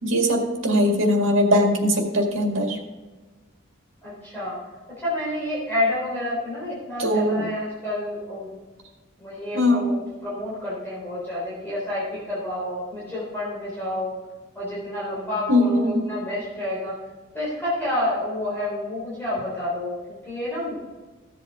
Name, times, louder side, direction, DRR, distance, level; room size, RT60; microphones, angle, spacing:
voice 1, 0.0-2.8 7.0-7.5 9.5-9.9 15.5-16.0, left 1 dB, 90° right, 2 dB, 2.0 m, -20 dB
voice 2, 4.0-4.6 5.0-8.5 9.2-14.1 14.6-16.9 17.3-19.9 20.2-20.8, left 1 dB, 10° left, -9 dB, 3.8 m, -29 dB
15.0 x 8.0 x 3.7 m, 1.3 s
head